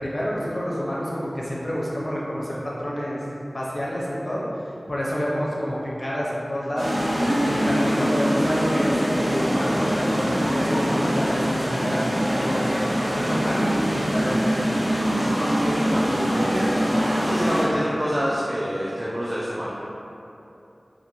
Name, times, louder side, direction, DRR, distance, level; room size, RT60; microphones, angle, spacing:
voice 1, 0.0-3.2 3.5-4.4 4.9-6.9 7.4-14.4, equal, 45° left, -6 dB, 0.6 m, -28 dB
sound 1, 6.8-17.6, equal, 90° right, 0.9 m, -23 dB
voice 2, 14.9-16.7 17.2-19.8, equal, 30° right, -7 dB, 0.4 m, -27 dB
2.5 x 2.5 x 3.0 m, 2.8 s
wide cardioid pair, 55°, 0 cm